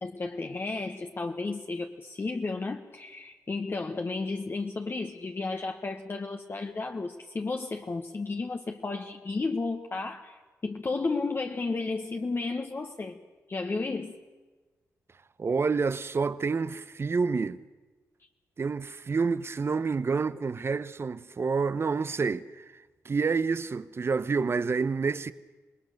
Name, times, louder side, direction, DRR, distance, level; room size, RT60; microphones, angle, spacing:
voice 1, 0.0-13.2 13.5-14.2, left 3 dB, 40° left, 1.3 m, -33 dB
voice 2, 15.4-17.6 18.6-25.3, right 4 dB, 45° right, 0.8 m, -28 dB
26.0 x 20.0 x 6.6 m
supercardioid pair, 55°, 6 cm